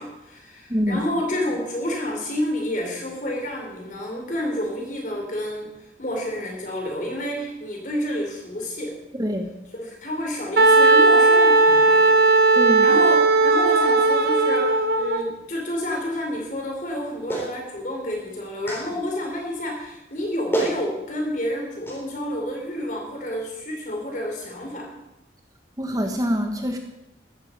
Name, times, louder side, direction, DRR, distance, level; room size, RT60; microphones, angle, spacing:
voice 1, 0.0-5.7 6.0-9.0 9.7-12.2 12.8-24.9, left 1 dB, 45° left, 1 dB, 4.4 m, -29 dB
voice 2, 0.7-1.0 9.2-9.5 12.6-12.9 25.8-26.8, equal, 20° right, 4 dB, 1.2 m, -24 dB
Wind instrument woodwind instrument, 10.6-15.2, right 3 dB, 55° right, 1.1 m, -16 dB
Clapping, 17.3-17.5 18.7-18.8 20.1-20.2 20.5-20.8 21.9-22.0, right 1 dB, 15° left, 4.0 m, -26 dB
15.0 x 12.5 x 5.5 m, 0.92 s
head